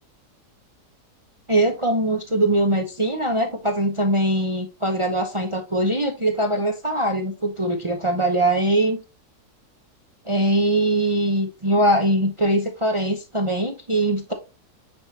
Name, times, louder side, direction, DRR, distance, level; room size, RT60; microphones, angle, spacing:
voice 1, 1.5-9.0 10.3-14.3, right 1 dB, 35° right, 3 dB, 0.5 m, -22 dB
9.7 x 3.6 x 2.8 m, 0.27 s
omnidirectional pair, 1.9 m